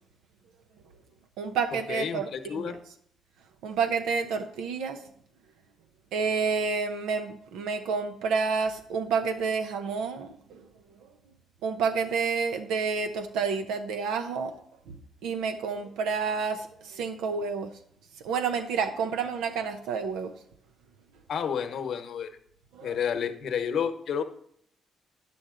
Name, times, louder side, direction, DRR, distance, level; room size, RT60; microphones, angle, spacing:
voice 1, 1.4-2.8 3.6-5.0 6.1-10.6 11.6-14.6 14.9-15.0 15.2-17.7 18.2-20.3 22.7-22.9, right 5 dB, 90° right, 0.6 m, -29 dB
voice 2, 1.9-2.8 21.3-22.3 22.8-24.2, left 7 dB, 65° left, 1.0 m, -30 dB
9.9 x 7.7 x 3.8 m
cardioid pair, 90°, 0 cm